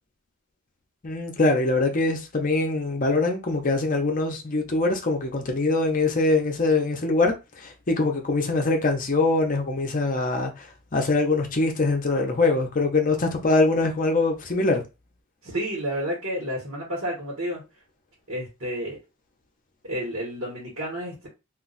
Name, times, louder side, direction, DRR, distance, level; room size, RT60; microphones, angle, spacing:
voice 1, 1.0-10.7 10.9-14.8, left 3 dB, 40° left, 0.7 m, -23 dB
voice 2, 15.4-17.6 18.3-19.0 19.8-21.3, equal, 60° right, 1.3 m, -30 dB
2.5 x 2.3 x 3.9 m
head